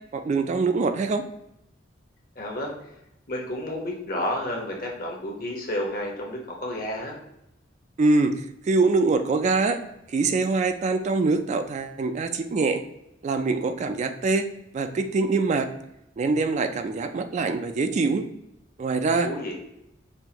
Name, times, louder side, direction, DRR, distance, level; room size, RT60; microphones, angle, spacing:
voice 1, 0.1-1.2 8.0-8.4 8.7-9.8 10.1-12.8 13.2-14.5 14.7-15.7 16.2-18.2 18.8-19.3, right 3 dB, 40° right, 8 dB, 0.3 m, -24 dB
voice 2, 2.3-2.7 3.3-7.2 19.2-19.5, left 1 dB, 50° left, 0 dB, 1.1 m, -31 dB
5.5 x 2.5 x 2.9 m, 0.82 s
head